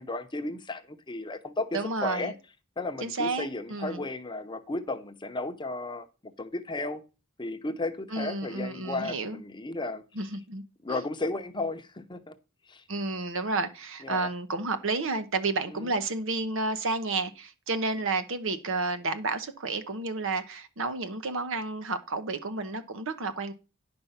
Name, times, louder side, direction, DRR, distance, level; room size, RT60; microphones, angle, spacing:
voice 1, 0.0-2.3 2.8-7.0 7.4-10.0 10.8-12.3 12.7-12.8 14.0-14.3 15.7-16.0, left 2 dB, 20° left, 0.8 m, -34 dB
voice 2, 1.7-2.3 3.0-4.0 8.1-9.4 10.1-10.6 10.9-11.0 12.9-23.5, right 3 dB, 65° right, 1.0 m, -31 dB
10.5 x 5.3 x 5.7 m
head